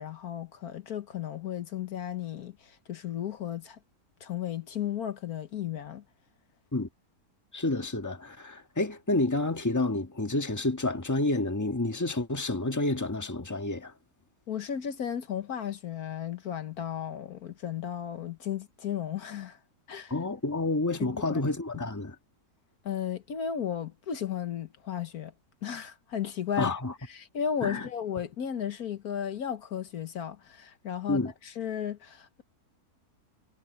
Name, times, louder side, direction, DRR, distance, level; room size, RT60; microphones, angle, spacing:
voice 1, 0.0-3.8 4.2-6.0 14.5-19.6 19.9-20.1 21.0-21.4 21.7-21.8 22.8-25.3 25.6-26.7 27.1-32.4, left 9 dB, 75° left, 1.7 m, -34 dB
voice 2, 7.5-13.9 20.1-22.1 26.6-26.9 27.6-27.9 31.1-31.3, left 2 dB, 10° left, 1.6 m, -29 dB
omnidirectional pair, 1.6 m